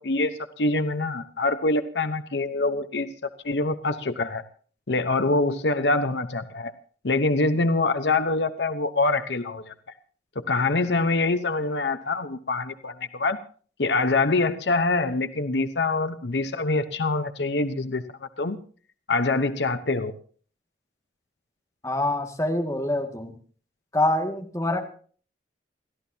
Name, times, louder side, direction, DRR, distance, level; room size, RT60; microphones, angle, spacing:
voice 1, 0.0-3.1 3.4-4.4 4.9-6.7 7.0-9.7 10.3-13.4 13.8-18.0 18.4-18.6 19.1-20.1, left 3 dB, 75° left, 10 dB, 0.9 m, -25 dB
voice 2, 21.8-23.3 23.9-24.8, left 1 dB, 15° left, 2 dB, 2.0 m, -25 dB
28.5 x 14.0 x 2.8 m, 0.43 s
head